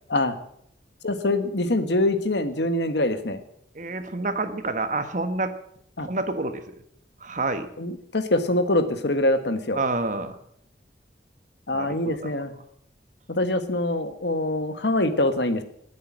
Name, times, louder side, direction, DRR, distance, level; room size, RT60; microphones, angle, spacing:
voice 1, 1.0-3.4 6.0-6.1 7.8-9.8 11.7-12.5 13.3-15.6, left 1 dB, 75° left, 9 dB, 1.5 m, -24 dB
voice 2, 3.7-5.5 6.0-6.8 7.2-7.7 9.7-10.4 11.7-12.3, right 2 dB, 45° right, 9 dB, 1.3 m, -28 dB
19.5 x 8.5 x 7.4 m, 0.71 s
head